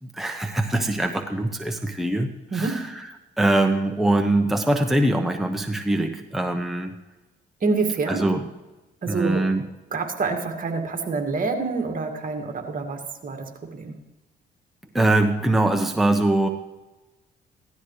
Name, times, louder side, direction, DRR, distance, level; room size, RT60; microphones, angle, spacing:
voice 1, 0.0-3.0 3.4-6.9 8.1-8.5 9.1-9.6 14.9-16.5, right 1 dB, ahead, 4 dB, 1.0 m, -23 dB
voice 2, 2.5-3.0 7.6-8.3 9.0-14.0, right 4 dB, 45° right, 3 dB, 2.1 m, -27 dB
16.5 x 12.5 x 3.2 m, 1.1 s
cardioid pair, 90°, 20 cm